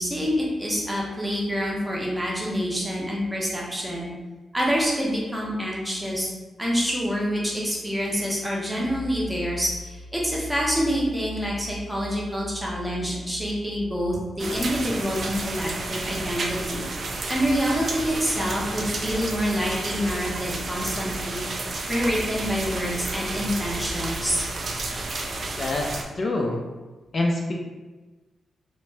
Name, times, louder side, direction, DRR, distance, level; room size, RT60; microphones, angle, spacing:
voice 1, 0.0-4.1 4.5-6.3 6.6-21.5 21.9-24.4, equal, 5° right, -4 dB, 0.6 m, -27 dB
sound 1, 14.4-26.0, right 2 dB, 50° right, 0.3 m, -31 dB
voice 2, 25.5-26.6 27.1-27.5, left 2 dB, 40° left, -1 dB, 0.3 m, -26 dB
2.6 x 2.1 x 3.2 m, 1.2 s
wide cardioid pair, 130°, 0 cm